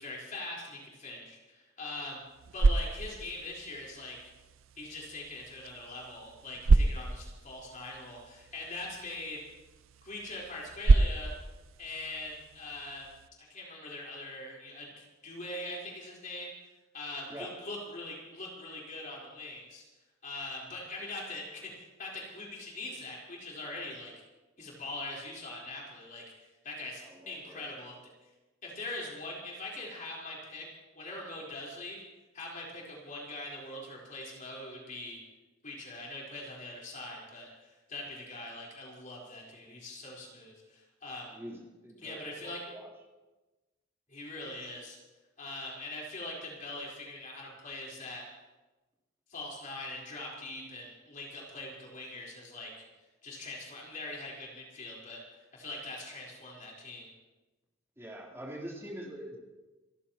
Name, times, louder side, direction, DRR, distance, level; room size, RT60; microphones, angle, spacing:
voice 1, 0.0-2.2 2.5-4.2 4.8-9.4 10.0-11.3 11.8-13.1 13.4-16.5 16.9-19.8 20.2-24.1 24.6-26.2 26.6-28.0 28.6-30.7 30.9-32.0 32.3-35.2 35.6-41.3 42.0-42.6 44.1-45.0 45.4-48.2 49.3-52.7 53.2-57.1, left 2 dB, 40° left, -4 dB, 4.3 m, -42 dB
sound 1, 2.2-13.3, right 3 dB, 85° right, 0.6 m, -30 dB
voice 2, 27.0-27.6 41.3-42.9 58.0-59.4, equal, 15° right, -3 dB, 3.6 m, -44 dB
28.0 x 14.5 x 3.0 m, 1.1 s
head